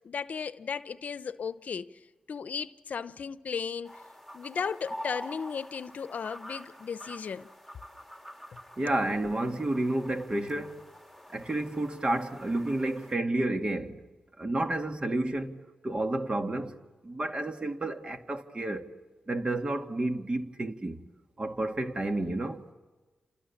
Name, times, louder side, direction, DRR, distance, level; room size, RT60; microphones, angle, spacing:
voice 1, 0.0-1.9 2.3-4.0 4.3-7.5, left 6 dB, 70° left, 0.8 m, -35 dB
sound 1, 3.8-13.1, equal, 5° right, 3.5 m, -46 dB
voice 2, 8.8-10.8 11.3-14.0 14.4-15.6 15.8-16.8 17.0-18.9 19.3-21.0 21.4-22.6, right 1 dB, 35° right, 2.4 m, -30 dB
30.0 x 27.0 x 7.3 m
cardioid pair, 50°, 3 cm